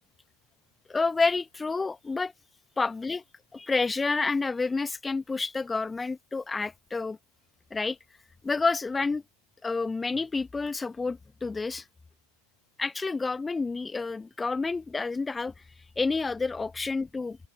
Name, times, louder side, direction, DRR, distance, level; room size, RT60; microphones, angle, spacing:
voice 1, 0.9-2.3 2.8-3.2 3.5-7.2 7.7-8.0 8.4-9.2 9.6-11.8 12.8-15.5 16.0-17.4, left 4 dB, 10° left, 1.2 m, -29 dB
open air
figure-of-eight pair, 90°, 0 cm